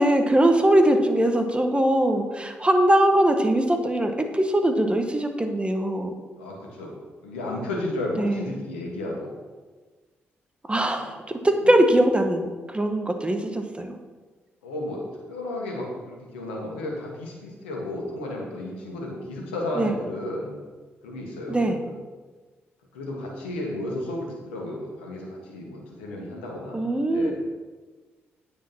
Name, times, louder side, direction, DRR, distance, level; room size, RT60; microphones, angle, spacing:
voice 1, 0.0-6.1 8.2-8.5 10.6-14.0 19.7-19.9 21.5-21.8 26.7-27.3, right 1 dB, 20° right, 5 dB, 1.4 m, -21 dB
voice 2, 6.4-6.9 7.2-9.3 11.0-11.1 14.6-15.0 15.3-20.6 21.0-22.0 22.9-26.8 27.1-27.3, left 1 dB, 90° left, -1 dB, 1.6 m, -33 dB
9.1 x 4.8 x 5.9 m, 1.3 s
hypercardioid pair, 40°, 6 cm